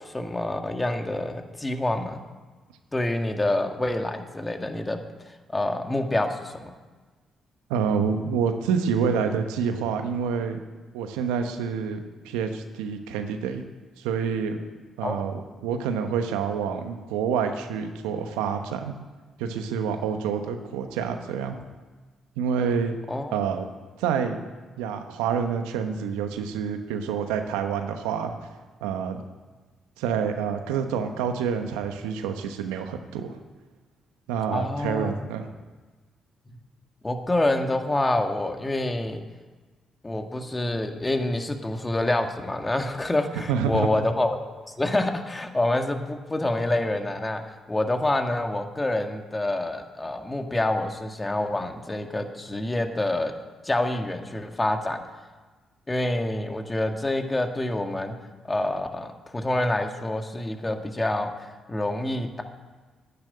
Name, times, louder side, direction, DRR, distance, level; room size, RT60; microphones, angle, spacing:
voice 1, 0.0-2.2 2.9-5.0 5.5-6.7 15.0-15.3 23.1-23.3 34.5-35.1 36.5-36.6 37.0-39.2 40.0-44.5 44.8-47.4 47.7-53.3 53.6-55.0 55.9-58.2 58.5-61.3 61.7-62.4, left 1 dB, 20° left, 5 dB, 1.9 m, -27 dB
voice 2, 7.7-10.6 10.9-13.6 14.0-14.6 15.0-18.9 19.4-21.6 22.4-23.0 23.3-23.7 24.0-24.4 24.8-28.3 28.8-29.2 30.0-33.4 34.3-35.5 43.5-43.9, right 6 dB, 90° right, 7 dB, 1.1 m, -27 dB
10.5 x 9.6 x 9.7 m, 1.3 s
supercardioid pair, 55°, 0 cm